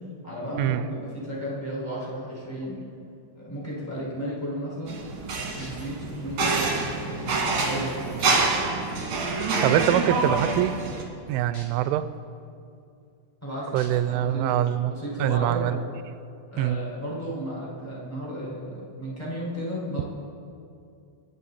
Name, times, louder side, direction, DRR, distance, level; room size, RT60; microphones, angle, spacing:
voice 1, 0.2-2.8 3.3-5.0 5.3-6.7 7.1-8.1 13.4-14.5 14.9-15.8 16.5-20.0, equal, 5° left, -6 dB, 4.5 m, -34 dB
sound 1, 4.9-11.0, right 3 dB, 45° right, 2.9 m, -26 dB
sound 2, 5.6-5.9 6.8-6.9 7.6-7.7 8.2-8.6 9.7-9.8 11.5-11.6 12.2-12.3 13.8-13.9 14.6-14.7, left 3 dB, 50° left, 3.2 m, -45 dB
voice 2, 9.6-10.8 11.3-12.1 13.7-14.9 15.2-15.8 16.6-16.8, right 12 dB, 85° right, 12 dB, 3.1 m, -24 dB
28.5 x 10.5 x 4.2 m, 2.5 s
omnidirectional pair, 5.5 m